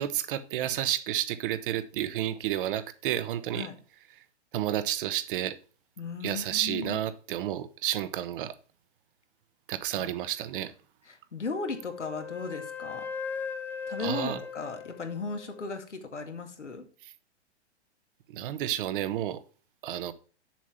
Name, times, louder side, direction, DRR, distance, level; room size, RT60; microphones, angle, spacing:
voice 1, 0.0-3.7 4.5-5.6 6.2-8.5 9.7-10.7 14.0-14.4 17.0-17.1 18.3-19.4 19.8-20.1, right 12 dB, 50° right, 1.1 m, -31 dB
voice 2, 6.0-7.0 10.0-10.1 11.1-13.1 13.9-16.8, left 4 dB, 90° left, 2.2 m, -36 dB
Wind instrument woodwind instrument, 11.5-15.7, left 6 dB, 5° left, 0.4 m, -39 dB
7.5 x 7.3 x 4.4 m
hypercardioid pair, 115°, 35 cm